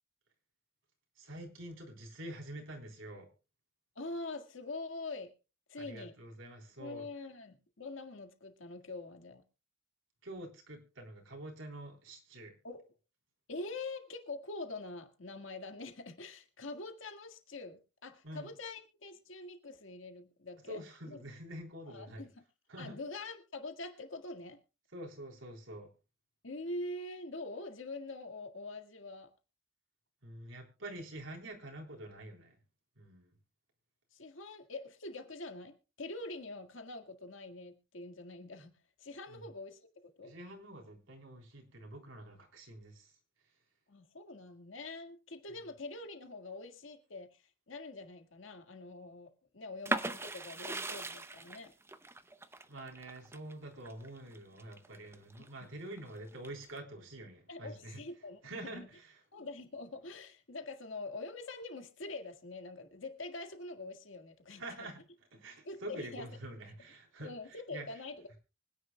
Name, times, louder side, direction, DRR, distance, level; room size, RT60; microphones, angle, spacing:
voice 1, 1.2-3.3 5.8-7.1 10.2-12.5 18.2-18.5 20.7-22.3 22.7-23.0 24.9-25.9 30.2-32.6 33.0-33.3 39.3-39.4 40.2-43.1 52.7-58.0 58.4-59.1 64.6-65.0 65.3-67.9, right 1 dB, 85° right, 3.8 m, -46 dB
voice 2, 4.0-5.3 5.7-6.2 6.8-9.4 12.6-12.9 13.5-21.2 21.9-22.4 22.8-24.6 26.4-29.3 34.1-38.7 39.0-39.8 40.2-40.3 43.9-51.7 55.6-55.9 57.5-58.9 59.3-65.0 65.6-66.3 67.2-68.2, left 2 dB, 75° left, 1.8 m, -45 dB
sound 1, 49.8-55.5 55.9-56.8, right 2 dB, 15° right, 0.6 m, -39 dB
24.5 x 10.0 x 2.3 m
head